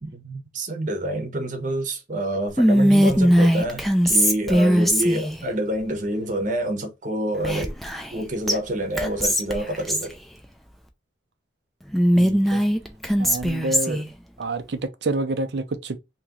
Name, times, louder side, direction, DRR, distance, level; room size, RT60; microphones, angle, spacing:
voice 1, 0.0-7.8 8.1-10.1, right 1 dB, 45° right, 0.9 m, -27 dB
Whispering, 2.6-5.4 7.4-8.2 8.5-8.6 9.0-10.1 11.9-14.1, equal, ahead, 0.4 m, -19 dB
voice 2, 12.1-12.6 13.2-14.0 14.4-16.0, right 2 dB, 60° right, 0.6 m, -28 dB
2.9 x 2.9 x 3.7 m
head